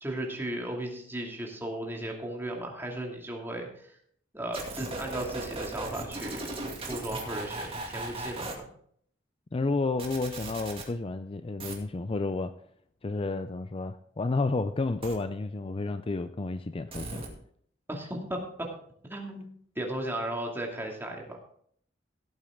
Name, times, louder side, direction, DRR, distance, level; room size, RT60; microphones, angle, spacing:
voice 1, 0.0-3.7 4.3-6.6 6.9-8.6 17.9-18.4 19.1-19.5 19.8-21.4, right 1 dB, 10° right, 0 dB, 2.4 m, -35 dB
sound 1, 4.5-8.5 10.0-10.9 11.6-11.7 15.0-15.1 16.9-17.3, right 2 dB, 30° right, 2.4 m, -37 dB
voice 2, 9.5-12.5 13.0-17.2, left 3 dB, 30° left, 11 dB, 0.4 m, -31 dB
16.5 x 8.8 x 3.7 m, 0.63 s
head